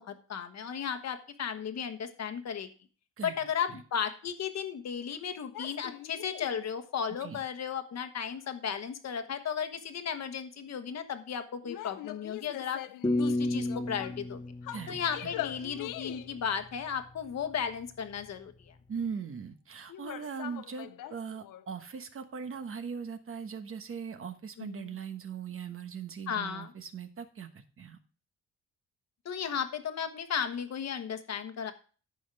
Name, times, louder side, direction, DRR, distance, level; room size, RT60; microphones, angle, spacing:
voice 1, 0.0-2.7 3.2-12.8 13.2-14.4 14.9-18.7 24.6-24.9 26.3-26.7 29.2-31.7, left 7 dB, 55° left, 9 dB, 1.3 m, -35 dB
sound 1, 5.5-6.7 11.6-14.3 14.6-16.4 19.9-21.7, left 14 dB, 85° left, 0.6 m, -42 dB
sound 2, 13.0-16.0, left 2 dB, 15° left, 0.7 m, -32 dB
voice 2, 14.7-15.3 18.9-28.0, right 6 dB, 45° right, 8 dB, 1.2 m, -40 dB
14.0 x 5.5 x 3.3 m, 0.39 s
cardioid pair, 125°, 31 cm